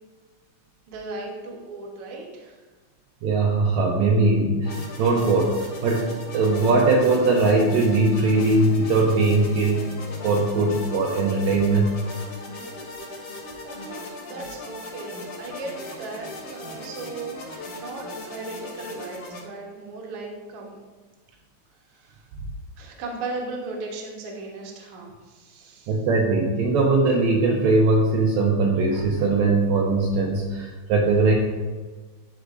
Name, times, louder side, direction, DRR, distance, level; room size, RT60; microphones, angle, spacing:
voice 1, 0.9-2.6 13.6-20.8 21.9-22.3 22.8-26.0, right 3 dB, 60° right, -1 dB, 1.7 m, -37 dB
voice 2, 3.2-9.9 10.2-12.1 25.9-31.3, right 3 dB, 75° right, -2 dB, 1.9 m, -20 dB
sound 1, 4.6-19.4, left 2 dB, 60° left, 2.2 m, -38 dB
11.0 x 4.5 x 2.5 m, 1.3 s
omnidirectional pair, 3.5 m